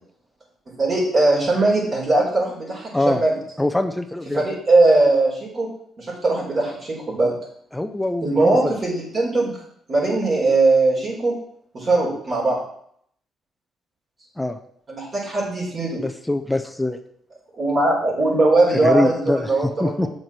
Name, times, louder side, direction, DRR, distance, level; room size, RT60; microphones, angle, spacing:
voice 1, 0.8-3.3 4.3-5.7 6.0-7.3 8.2-9.6 9.9-11.3 11.7-12.6 14.9-16.0 17.6-20.1, right 2 dB, 40° right, -5 dB, 4.5 m, -20 dB
voice 2, 3.6-4.4 7.7-8.8 14.4-14.6 16.0-17.0 18.8-20.1, left 2 dB, 10° left, 8 dB, 0.8 m, -23 dB
7.8 x 6.3 x 6.0 m, 0.66 s
cardioid pair, 90°, 0 cm